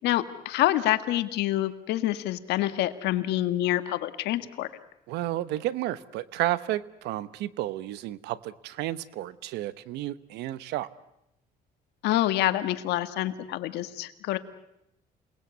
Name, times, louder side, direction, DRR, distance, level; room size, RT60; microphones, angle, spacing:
voice 1, 0.0-4.7 12.0-14.4, left 14 dB, 85° left, 10 dB, 1.6 m, -27 dB
voice 2, 5.1-10.9, right 14 dB, 85° right, 16 dB, 1.0 m, -32 dB
28.0 x 19.5 x 8.3 m, 0.85 s
cardioid pair, 110°, 17 cm